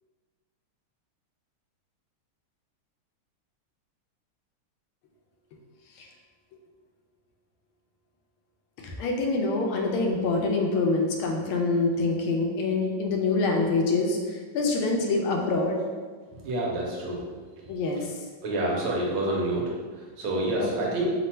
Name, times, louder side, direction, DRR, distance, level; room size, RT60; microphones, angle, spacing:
voice 1, 8.8-15.8 17.7-18.1 20.6-20.7, left 3 dB, 80° left, 1 dB, 1.5 m, -26 dB
voice 2, 16.4-17.2 18.4-21.1, right 1 dB, 80° right, -3 dB, 1.7 m, -28 dB
4.3 x 2.2 x 4.2 m, 1.5 s
omnidirectional pair, 2.4 m